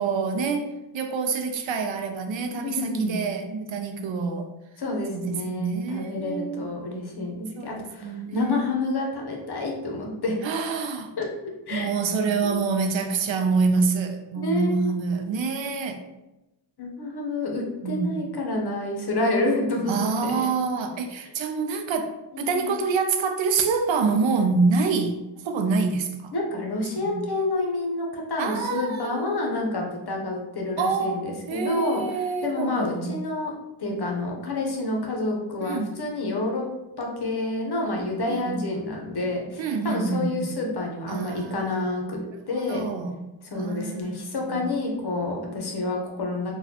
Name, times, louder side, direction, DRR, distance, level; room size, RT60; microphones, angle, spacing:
voice 1, 0.0-4.5 5.1-6.7 7.6-8.7 10.4-11.1 11.7-16.0 17.8-18.2 19.9-26.3 27.0-27.2 28.4-29.5 30.8-33.2 35.6-35.9 38.3-38.6 39.6-40.6 41.1-43.2 43.5-44.6, right 4 dB, 80° right, 6 dB, 0.5 m, -27 dB
voice 2, 2.6-3.2 4.8-10.4 11.2-11.3 11.7-11.9 12.4-12.6 14.3-15.0 16.8-19.9 20.2-20.5 22.3-22.8 26.3-33.5 33.8-36.6 37.0-42.2 42.5-42.9 43.4-46.5, left 2 dB, 60° left, 0 dB, 0.8 m, -28 dB
4.0 x 2.3 x 2.8 m, 0.97 s
wide cardioid pair, 85°, 45 cm